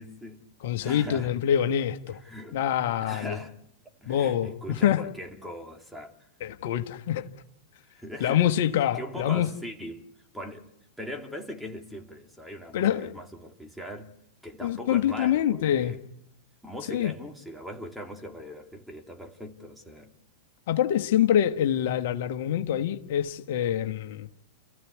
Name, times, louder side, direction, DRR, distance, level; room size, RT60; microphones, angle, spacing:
voice 1, 0.0-0.4 0.8-1.3 2.1-2.6 3.0-3.6 4.0-6.3 7.8-8.5 8.9-10.1 10.3-10.7 11.0-14.1 14.4-16.0 16.6-20.1, equal, ahead, 3.0 m, -40 dB
voice 2, 0.6-2.2 2.5-3.4 4.1-5.0 6.4-7.3 8.2-9.5 12.7-13.1 14.6-15.9 16.9-17.1 20.7-24.3, left 10 dB, 65° left, 1.3 m, -25 dB
29.5 x 15.0 x 8.5 m
hypercardioid pair, 110°, 0 cm